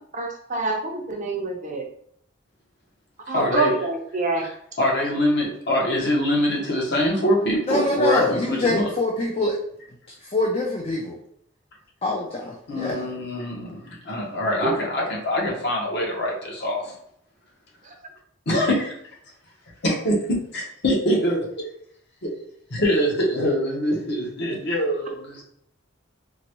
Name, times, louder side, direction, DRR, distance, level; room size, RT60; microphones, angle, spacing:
voice 1, 0.1-1.8 3.3-4.5 14.6-14.7, right 3 dB, 40° right, 2 dB, 0.6 m, -26 dB
voice 2, 3.3-3.7 4.4-4.5 4.8-8.9 12.7-16.9 18.5-18.9 19.8-21.4 22.7-25.4, equal, 55° left, -1 dB, 1.0 m, -24 dB
voice 3, 7.7-9.6 10.2-11.2 12.0-13.1, left 2 dB, 30° left, -1 dB, 0.4 m, -25 dB
3.9 x 2.2 x 2.9 m, 0.69 s
head